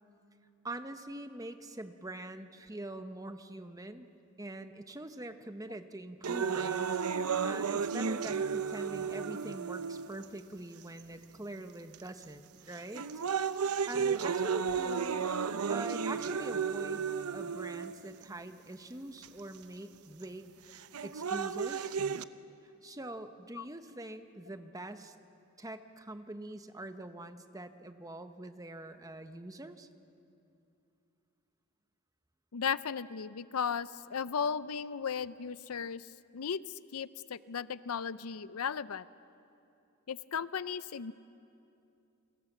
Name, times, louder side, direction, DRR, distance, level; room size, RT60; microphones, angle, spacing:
voice 1, 0.6-4.1 4.4-6.9 7.4-13.0 13.9-15.2 15.7-17.1 17.3-20.5 21.0-22.0 22.8-25.1 25.6-29.9, right 1 dB, 15° right, 8 dB, 1.0 m, -44 dB
sound 1, 6.2-10.3 11.0-11.1 11.9-12.2 12.7-18.2 19.2-19.3 20.7-22.2, right 6 dB, 80° right, 0.7 m, -33 dB
voice 2, 32.5-39.1 40.1-41.1, left 6 dB, 75° left, 16 dB, 0.5 m, -36 dB
29.0 x 25.5 x 7.3 m, 2.7 s
head